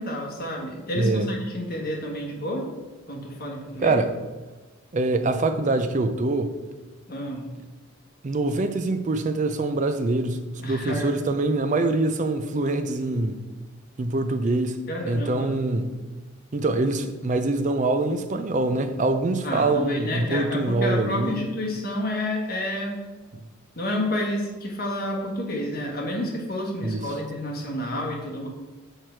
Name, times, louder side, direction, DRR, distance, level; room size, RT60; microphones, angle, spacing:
voice 1, 0.0-2.7 3.1-4.0 7.1-7.5 10.6-11.1 14.9-15.5 19.4-23.0 23.8-28.5, left 1 dB, 45° left, 1.4 m, -29 dB
voice 2, 1.0-1.3 3.8-4.1 4.9-6.6 8.2-13.4 14.0-16.0 16.5-21.4 26.8-27.1, right 2 dB, 35° right, 0.4 m, -24 dB
6.4 x 4.5 x 4.5 m
head